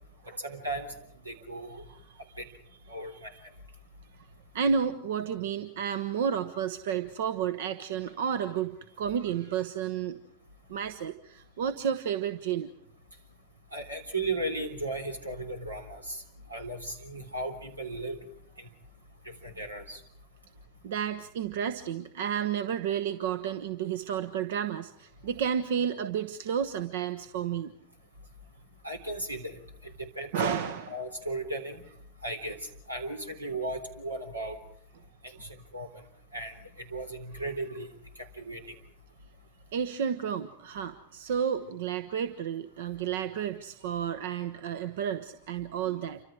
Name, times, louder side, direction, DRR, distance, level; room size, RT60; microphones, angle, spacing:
voice 1, 0.4-0.9 1.3-1.8 2.4-2.5 2.9-3.3 13.7-16.2 16.5-18.2 19.3-20.0 28.8-29.6 30.0-30.6 30.9-31.8 32.2-32.6 32.9-34.6 35.4-35.5 35.7-35.9 36.3-37.9 38.4-38.6, right 2 dB, 85° right, 5 dB, 3.5 m, -35 dB
voice 2, 1.9-2.2 3.1-3.2 4.5-10.2 10.7-12.7 20.8-27.7 30.3-30.9 39.7-46.2, right 8 dB, 55° right, 11 dB, 1.1 m, -31 dB
29.0 x 25.0 x 4.9 m, 0.69 s
figure-of-eight pair, 90°, 0 cm